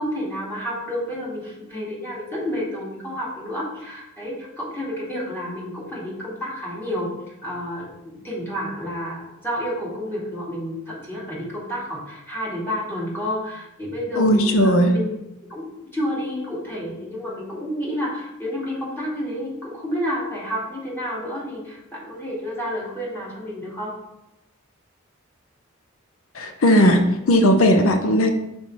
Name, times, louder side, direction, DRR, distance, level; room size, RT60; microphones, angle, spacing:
voice 1, 0.0-7.1 7.4-15.1 15.5-15.7 15.9-23.9, equal, 10° left, -6 dB, 2.2 m, -30 dB
voice 2, 14.1-15.0 26.3-28.3, equal, 70° left, 6 dB, 0.7 m, -17 dB
5.4 x 4.4 x 4.7 m, 0.88 s
head